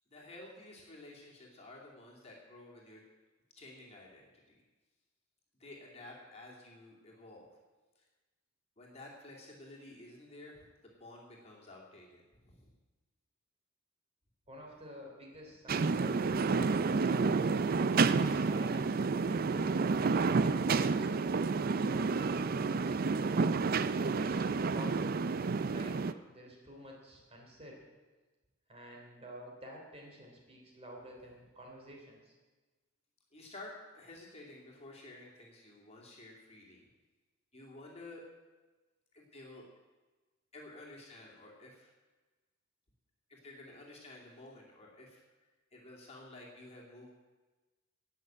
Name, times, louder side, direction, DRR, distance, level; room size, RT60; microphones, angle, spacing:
voice 1, 0.1-3.0 3.5-4.6 5.6-7.6 8.0-8.1 8.8-12.7 33.3-36.8 37.5-38.2 39.1-39.6 40.5-41.9 43.3-45.2 45.7-47.1, left 2 dB, 30° left, -2 dB, 2.7 m, -52 dB
voice 2, 14.5-17.8 18.3-21.5 24.2-25.2 25.6-27.8 28.7-32.3, equal, 30° right, -1 dB, 3.2 m, -51 dB
sound 1, 15.7-26.1, right 4 dB, 45° right, 0.4 m, -30 dB
18.5 x 6.6 x 7.7 m, 1.2 s
head